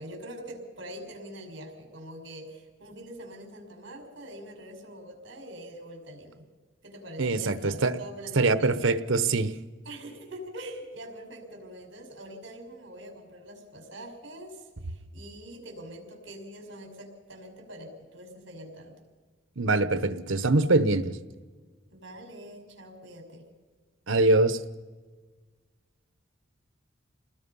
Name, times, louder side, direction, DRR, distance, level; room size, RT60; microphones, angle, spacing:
voice 1, 0.0-6.4 6.8-8.8 9.8-19.0 21.9-23.5, right 1 dB, 65° right, 2 dB, 5.4 m, -44 dB
voice 2, 7.2-8.0 8.4-9.5 19.6-21.2 24.1-24.6, right 2 dB, 85° right, 13 dB, 1.0 m, -23 dB
28.0 x 20.0 x 5.5 m, 1.4 s
head